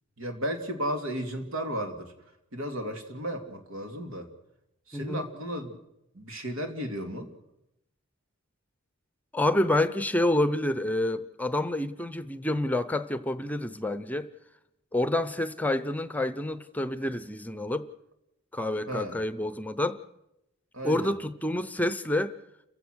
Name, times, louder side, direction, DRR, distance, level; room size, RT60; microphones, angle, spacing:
voice 1, 0.2-2.1 2.5-4.3 4.9-5.8 6.1-7.3 18.9-19.2 20.7-21.1, equal, 85° right, 2.8 m, -34 dB
voice 2, 4.9-5.2 9.3-14.3 14.9-17.9 18.5-20.0 20.8-22.4, left 1 dB, 10° left, 0.7 m, -28 dB
29.5 x 16.0 x 6.3 m
head